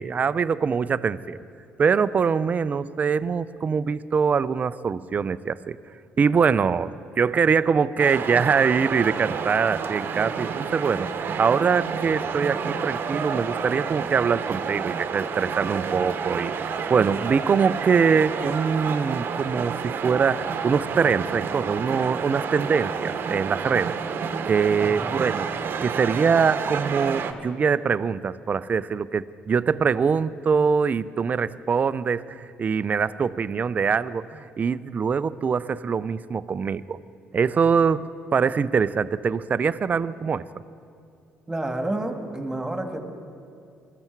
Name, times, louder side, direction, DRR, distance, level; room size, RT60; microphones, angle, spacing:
voice 1, 0.0-1.4 1.8-5.8 6.2-24.0 24.4-37.0 37.3-40.5, right 6 dB, 35° right, 16 dB, 0.5 m, -23 dB
sound 1, 8.0-27.3, right 6 dB, 55° right, 0.9 m, -30 dB
voice 2, 24.8-25.1 41.5-43.0, right 1 dB, 15° right, 5 dB, 1.8 m, -29 dB
21.0 x 14.0 x 4.6 m, 2.4 s
supercardioid pair, 80°, 4 cm